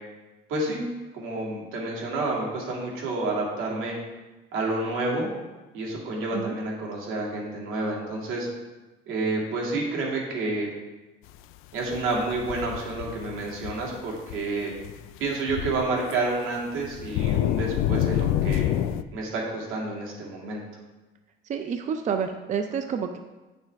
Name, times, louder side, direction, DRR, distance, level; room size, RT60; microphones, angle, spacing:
voice 1, 0.5-0.8 1.1-3.9 4.5-5.3 5.7-8.5 9.1-10.7 11.7-14.7 15.2-18.7 19.1-20.6, right 2 dB, 85° right, -2 dB, 2.4 m, -29 dB
sound 1, 11.9-14.0 14.3-14.5 14.8-15.0 15.3-15.8 16.1-16.2 16.8-19.0, left 11 dB, 85° left, 0.4 m, -27 dB
voice 2, 21.5-23.2, right 6 dB, 35° right, 6 dB, 0.5 m, -29 dB
9.4 x 6.7 x 3.5 m, 1.2 s
cardioid pair, 130°, 21 cm